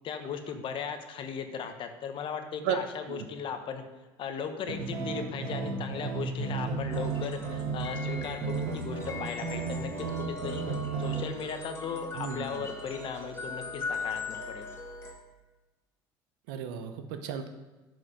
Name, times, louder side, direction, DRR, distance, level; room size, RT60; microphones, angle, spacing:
voice 1, 0.0-3.8 4.2-10.6 11.0-14.7, left 7 dB, 50° left, 7 dB, 1.1 m, -37 dB
sound 1, 4.6-11.2, right 5 dB, 65° right, 1.8 m, -33 dB
sound 2, 6.9-15.1, left 3 dB, 25° left, 1.9 m, -40 dB
voice 2, 12.1-12.6 16.5-17.5, right 8 dB, 85° right, 8 dB, 0.8 m, -34 dB
8.6 x 4.9 x 5.1 m, 1.2 s
supercardioid pair, 95°, 11 cm